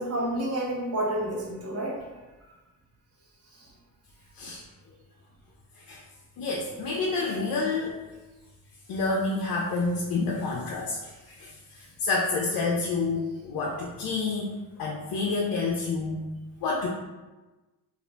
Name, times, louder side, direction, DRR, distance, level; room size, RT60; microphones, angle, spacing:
voice 1, 0.0-2.1 3.5-3.7, right 1 dB, 40° right, -4 dB, 1.0 m, -30 dB
voice 2, 6.4-8.0 8.9-14.5 14.8-16.2 16.6-16.9, left 3 dB, 65° left, -2 dB, 0.6 m, -29 dB
2.6 x 2.4 x 3.2 m, 1.2 s
cardioid pair, 100°, 38 cm